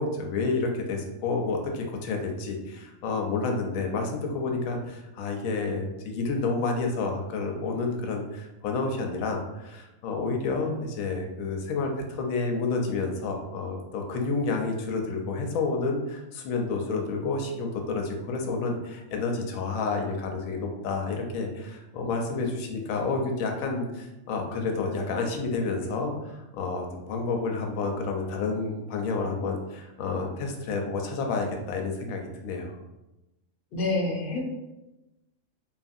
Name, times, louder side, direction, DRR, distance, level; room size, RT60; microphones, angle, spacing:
voice 1, 0.0-32.7, left 3 dB, 80° left, 2 dB, 1.0 m, -30 dB
voice 2, 33.7-34.4, left 2 dB, 50° left, -1 dB, 0.7 m, -27 dB
2.8 x 2.4 x 2.6 m, 0.98 s
omnidirectional pair, 1.4 m